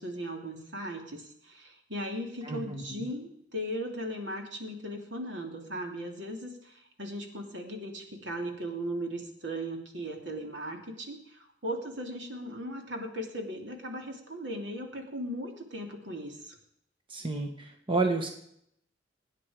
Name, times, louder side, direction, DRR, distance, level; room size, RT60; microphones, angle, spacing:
voice 1, 0.0-16.6, equal, 75° right, 2 dB, 3.0 m, -37 dB
voice 2, 2.4-3.0 17.1-18.3, right 3 dB, 30° right, 3 dB, 1.7 m, -31 dB
24.5 x 9.9 x 5.1 m, 0.72 s
head